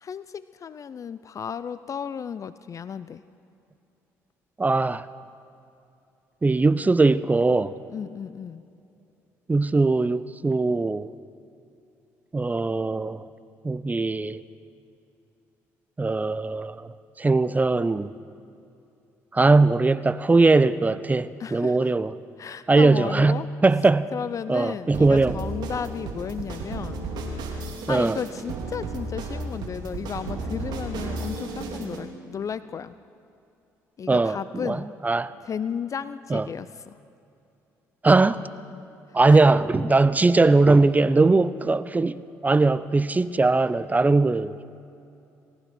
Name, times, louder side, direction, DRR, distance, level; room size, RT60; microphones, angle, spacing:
voice 1, 0.0-3.2 7.9-8.6 21.4-21.9 22.4-23.5 24.1-27.1 27.6-33.0 34.0-34.9 35.4-36.9 39.3-39.4, left 7 dB, 45° left, 0.6 m, -34 dB
voice 2, 4.6-5.1 6.4-7.8 9.5-11.1 12.3-13.3 13.6-14.4 16.0-18.1 19.3-22.1 22.7-24.1 24.5-25.3 27.9-28.2 34.1-35.3 36.3-36.5 38.0-38.4 39.1-44.6, right 3 dB, 20° right, 0.7 m, -20 dB
sound 1, 24.9-32.1, right 3 dB, 65° right, 3.0 m, -33 dB
28.0 x 15.5 x 6.2 m
hypercardioid pair, 60°, 8 cm